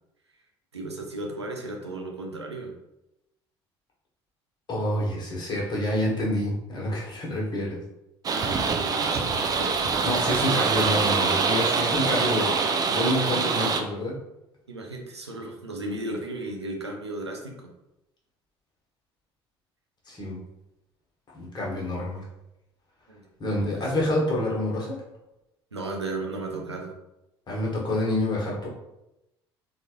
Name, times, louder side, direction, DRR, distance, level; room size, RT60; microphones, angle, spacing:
voice 1, 0.7-2.7 8.3-9.8 14.7-17.7 23.1-23.8 25.7-26.9, right 2 dB, 85° right, 1 dB, 0.5 m, -35 dB
voice 2, 4.7-7.8 10.0-12.6 12.9-14.1 20.1-20.4 21.3-22.2 23.4-25.0 27.5-28.7, left 1 dB, 30° left, -3 dB, 1.2 m, -27 dB
sound 1, 8.2-13.8, right 5 dB, 30° right, 0.4 m, -24 dB
3.8 x 2.4 x 2.8 m, 0.91 s
figure-of-eight pair, 60°, 14 cm